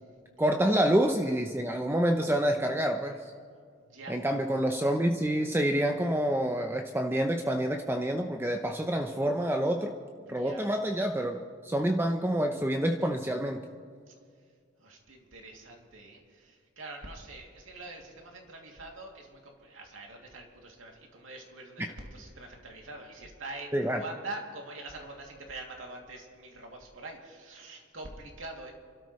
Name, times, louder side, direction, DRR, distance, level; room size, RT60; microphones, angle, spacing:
voice 1, 0.4-3.3 4.1-9.9 10.3-13.6 21.8-21.9 23.7-24.0, right 1 dB, 10° right, 4 dB, 0.7 m, -27 dB
voice 2, 3.8-4.2 10.3-10.6 14.8-28.7, right 2 dB, 85° right, 0 dB, 2.8 m, -44 dB
28.0 x 13.0 x 3.2 m, 2.1 s
head